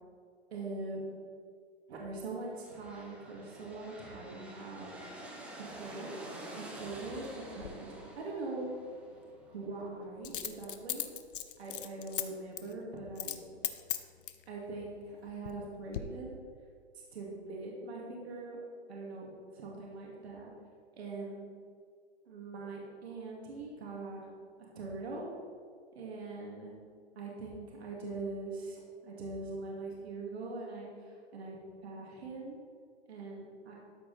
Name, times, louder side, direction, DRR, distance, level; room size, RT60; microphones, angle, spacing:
voice 1, 0.5-1.0 1.9-5.0 5.6-6.1 6.6-8.7 9.5-11.0 11.6-13.4 14.5-16.4 17.1-18.6 18.9-20.5 21.0-21.5 22.3-24.3 24.7-25.2 25.9-26.7 27.2-31.6 31.8-32.6 33.1-33.8, right 3 dB, 70° right, -3 dB, 2.4 m, -42 dB
sound 1, 2.5-10.1, right 1 dB, 5° right, 0.6 m, -48 dB
Coin (dropping), 7.6-7.7 10.2-12.2 12.6-12.7 13.2-13.4 13.6-14.4 15.1-15.6 15.9-16.0, left 11 dB, 55° left, 0.7 m, -37 dB
13.0 x 4.9 x 4.1 m, 2.1 s
hypercardioid pair, 145°, 33 cm